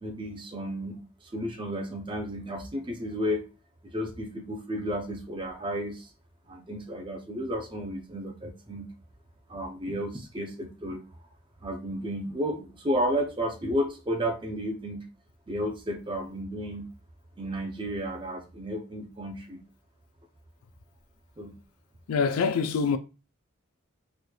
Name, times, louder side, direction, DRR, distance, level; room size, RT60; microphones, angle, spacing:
voice 1, 0.0-3.4 3.9-6.1 6.5-8.9 9.5-11.0 11.6-15.0 15.5-16.8 17.4-19.6 21.4-21.6, equal, 25° right, 0.5 m, -32 dB
voice 2, 22.1-23.0, left 5 dB, 85° left, 0.4 m, -25 dB
4.0 x 3.1 x 2.3 m
head